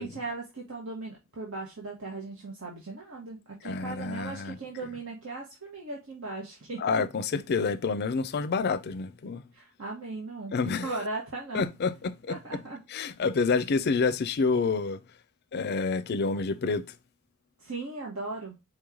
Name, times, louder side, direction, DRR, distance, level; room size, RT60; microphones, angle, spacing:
voice 1, 0.0-6.8 9.5-11.6 12.3-12.8 17.6-18.6, right 3 dB, 75° right, 1.2 m, -38 dB
voice 2, 3.6-4.6 6.8-9.4 10.5-11.0 11.5-12.4 12.9-15.0 15.5-16.8, left 4 dB, 50° left, 0.4 m, -28 dB
4.4 x 3.1 x 3.6 m
head